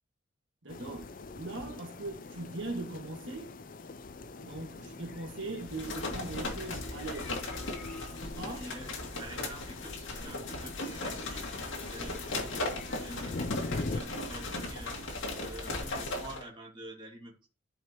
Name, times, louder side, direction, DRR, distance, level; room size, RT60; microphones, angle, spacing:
voice 1, 0.6-3.5 4.4-7.4 8.4-8.7, right 2 dB, 70° right, 1.7 m, -40 dB
sound 1, 0.7-14.0, left 3 dB, 45° left, 0.5 m, -42 dB
sound 2, 5.6-16.4, left 2 dB, 75° left, 2.1 m, -37 dB
voice 2, 8.5-11.4 11.9-15.0 15.4-17.5, right 1 dB, 25° right, 2.2 m, -48 dB
12.5 x 4.9 x 3.0 m
head